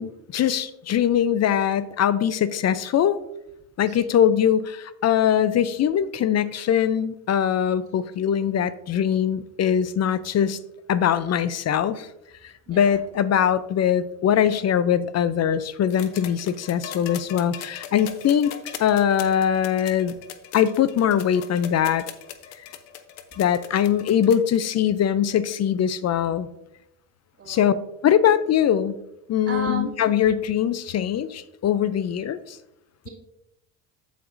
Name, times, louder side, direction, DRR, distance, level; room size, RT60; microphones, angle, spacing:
voice 1, 0.0-3.2 3.8-10.6 10.9-12.1 12.4-18.5 18.8-20.1 20.5-22.1 22.6-22.7 23.4-26.5 27.5-27.7 28.0-29.0 29.3-32.6, left 9 dB, 35° left, 15 dB, 0.5 m, -22 dB
sound 1, 15.9-24.6 25.8-25.9, left 10 dB, 85° left, 0.9 m, -40 dB
voice 2, 29.5-29.9, right 3 dB, 30° right, -8 dB, 2.5 m, -33 dB
14.5 x 4.8 x 2.6 m, 0.85 s
hypercardioid pair, 75°, 48 cm